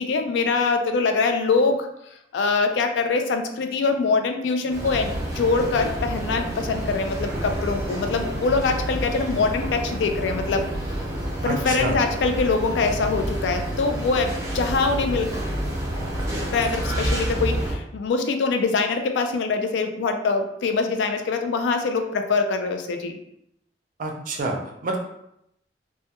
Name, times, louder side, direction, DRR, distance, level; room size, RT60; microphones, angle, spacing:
voice 1, 0.0-1.9 2.3-10.7 11.4-15.3 16.5-23.1, left 4 dB, 75° left, 6 dB, 0.3 m, -23 dB
sound 1, 4.7-17.7, right 1 dB, 15° right, 0.7 m, -29 dB
voice 2, 11.4-12.0 24.0-25.0, right 2 dB, 50° right, 1 dB, 0.4 m, -28 dB
2.2 x 2.1 x 2.8 m, 0.79 s
head